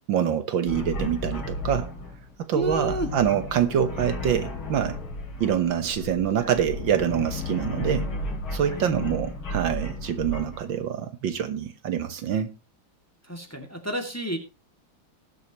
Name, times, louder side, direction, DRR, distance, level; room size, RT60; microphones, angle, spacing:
voice 1, 0.1-1.9 2.5-5.0 5.4-8.1 8.5-12.5, right 9 dB, 70° right, 1.8 m, -25 dB
sound 1, 0.7-10.8, left 1 dB, 85° left, 3.9 m, -33 dB
voice 2, 2.5-3.1 6.4-6.5 8.7-8.8 13.3-14.4, equal, 5° left, 2.1 m, -30 dB
20.0 x 8.1 x 3.0 m
omnidirectional pair, 2.2 m